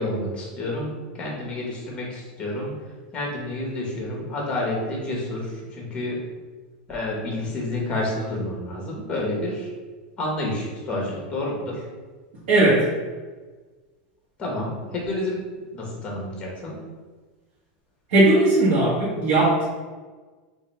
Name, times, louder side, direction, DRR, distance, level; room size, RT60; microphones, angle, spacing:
voice 1, 0.0-2.7 3.1-6.2 6.9-9.7 10.2-11.8 14.4-15.4 15.7-16.8, left 1 dB, 20° left, -2 dB, 1.2 m, -29 dB
voice 2, 12.5-12.9 18.1-19.6, right 2 dB, 80° right, -9 dB, 1.2 m, -18 dB
3.8 x 2.7 x 3.2 m, 1.4 s
supercardioid pair, 150°, 5 cm